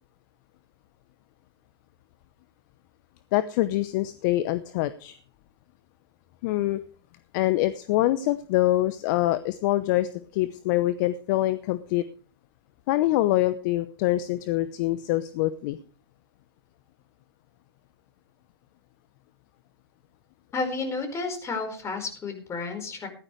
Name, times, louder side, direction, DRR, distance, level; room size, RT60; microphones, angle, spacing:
voice 1, 3.3-5.2 6.4-6.8 7.3-12.0 12.9-15.8, left 15 dB, 45° left, 14 dB, 0.8 m, -25 dB
voice 2, 20.5-23.1, left 4 dB, 20° left, 6 dB, 4.7 m, -31 dB
15.5 x 13.0 x 3.2 m, 0.39 s
hypercardioid pair, 115°, 14 cm